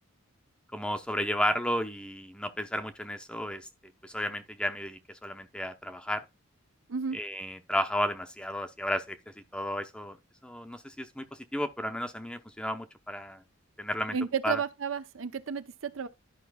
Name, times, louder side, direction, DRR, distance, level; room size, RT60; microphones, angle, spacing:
voice 1, 0.7-3.7 4.0-6.2 7.1-9.2 9.5-10.2 10.4-11.3 11.5-13.4 13.8-14.2 14.4-14.6, equal, 5° left, 0.6 m, -33 dB
voice 2, 14.1-16.1, right 6 dB, 75° right, 0.7 m, -32 dB
11.5 x 5.4 x 2.3 m
head